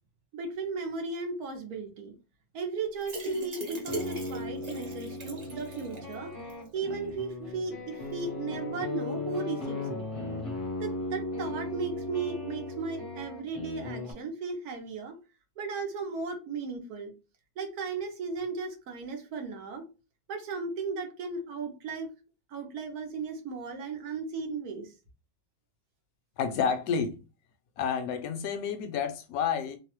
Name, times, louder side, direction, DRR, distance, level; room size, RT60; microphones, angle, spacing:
voice 1, 0.3-2.1 2.5-10.0 10.8-15.2 15.6-17.1 17.6-19.9 20.3-22.1 22.5-24.9, right 4 dB, 80° right, 1.3 m, -36 dB
sound 1, 3.0-6.1 6.5-6.6 6.9-7.0, right 2 dB, 45° right, 0.5 m, -39 dB
sound 2, 3.7-14.1, left 2 dB, 35° left, 0.6 m, -37 dB
voice 2, 26.4-27.2 27.8-29.8, left 6 dB, 75° left, 1.0 m, -30 dB
3.1 x 2.0 x 3.0 m
omnidirectional pair, 1.6 m